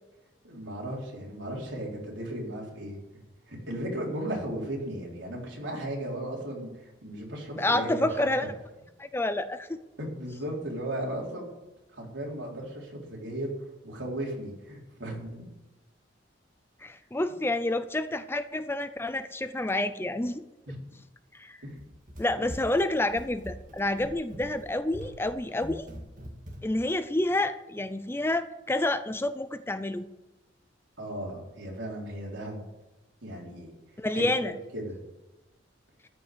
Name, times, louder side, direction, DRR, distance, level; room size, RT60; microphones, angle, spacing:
voice 1, 0.4-3.0 3.5-8.3 10.0-11.5 11.9-13.5 13.8-15.4 20.7-20.8 21.6-21.7 31.0-32.6 33.2-33.7 34.1-35.0, right 1 dB, 75° right, -2 dB, 4.0 m, -36 dB
voice 2, 7.6-8.5 9.0-9.8 16.8-20.4 21.3-21.6 22.2-25.9 26.6-30.1 34.0-34.5, left 1 dB, 10° left, 12 dB, 0.4 m, -29 dB
Run, 21.7-26.9, equal, 45° right, 1.9 m, -44 dB
14.0 x 5.6 x 9.2 m, 1.1 s
head